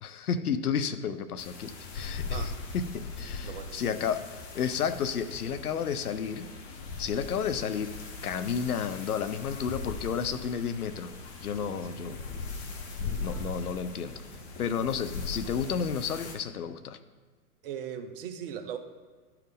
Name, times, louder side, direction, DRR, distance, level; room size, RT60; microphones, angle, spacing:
voice 1, 0.0-6.5 7.0-7.9 8.2-11.1 11.4-12.2 13.2-14.2 14.6-17.0, left 7 dB, 70° left, 11 dB, 0.7 m, -32 dB
sound 1, 1.4-16.3, left 3 dB, 45° left, 1.4 m, -39 dB
voice 2, 3.4-3.9 11.5-12.0 17.6-18.8, right 8 dB, 35° right, 7 dB, 0.7 m, -39 dB
11.5 x 4.6 x 3.6 m, 1.4 s
figure-of-eight pair, 115°, 46 cm